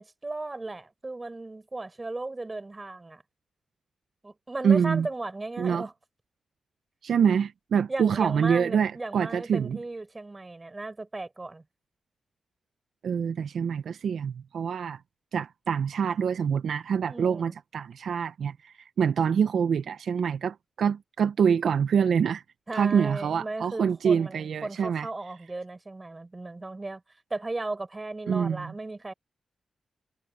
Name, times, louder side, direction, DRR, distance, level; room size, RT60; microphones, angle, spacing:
voice 1, 0.0-3.2 4.2-5.9 7.9-11.6 17.1-17.5 22.7-27.0 27.3-29.1, right 2 dB, 25° right, 4.4 m, -36 dB
voice 2, 4.6-5.1 5.6-5.8 7.0-9.8 13.0-15.0 15.3-22.4 22.7-25.1 28.3-28.7, right 7 dB, 80° right, 0.7 m, -25 dB
cardioid pair, 70°, 0 cm